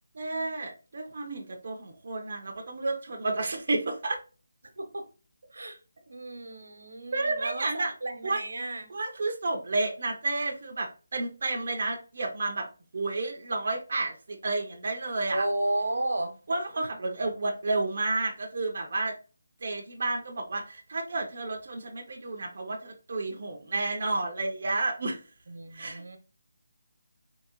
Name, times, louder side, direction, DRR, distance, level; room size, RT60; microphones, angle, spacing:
voice 1, 0.2-4.2 7.1-7.9 8.2-8.4 8.9-12.7 12.9-15.4 16.5-19.2 19.6-25.2 25.7-26.2, right 2 dB, 35° right, 1 dB, 0.5 m, -31 dB
voice 2, 4.8-5.1 5.5-5.8 6.1-8.9 15.3-16.4 25.5-26.2, right 2 dB, 85° right, 7 dB, 0.8 m, -33 dB
3.6 x 2.9 x 2.8 m, 0.35 s
hypercardioid pair, 180°, 0 cm